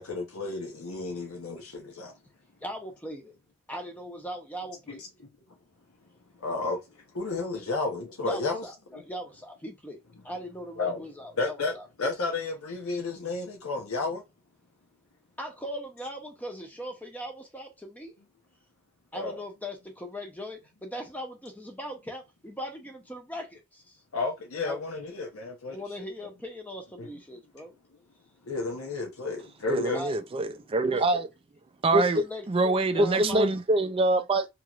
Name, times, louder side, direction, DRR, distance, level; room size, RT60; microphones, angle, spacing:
voice 1, 0.0-2.1 4.9-5.0 6.4-6.8 7.1-8.6 8.9-9.0 10.8-11.0 11.4-14.2 19.1-19.4 24.1-25.8 27.0-27.1 28.4-30.0, left 3 dB, 80° left, 0.8 m, -32 dB
voice 2, 2.6-3.3 3.7-5.0 7.5-7.6 8.2-11.9 15.4-18.2 19.1-24.0 24.6-24.8 25.7-27.7 29.9-30.2 30.9-31.2 31.9-33.4, equal, 5° left, 0.7 m, -39 dB
voice 3, 29.7-31.3 31.8-34.5, right 2 dB, 25° right, 0.3 m, -24 dB
2.9 x 2.9 x 2.4 m
head